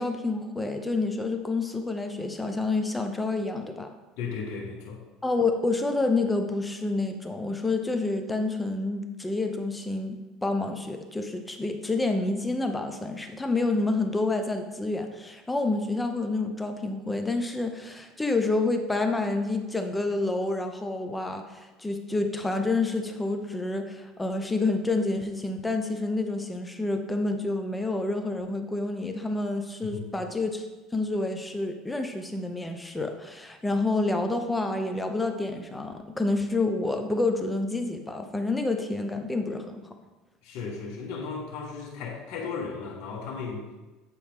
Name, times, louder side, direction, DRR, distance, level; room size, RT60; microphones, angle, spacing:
voice 1, 0.0-3.9 5.2-30.7 30.9-39.8, left 2 dB, 10° left, 6 dB, 0.6 m, -28 dB
voice 2, 4.2-5.0 29.8-30.0 40.4-43.6, left 5 dB, 65° left, -3 dB, 1.5 m, -35 dB
8.3 x 4.5 x 3.6 m, 1.1 s
cardioid pair, 130°, 0 cm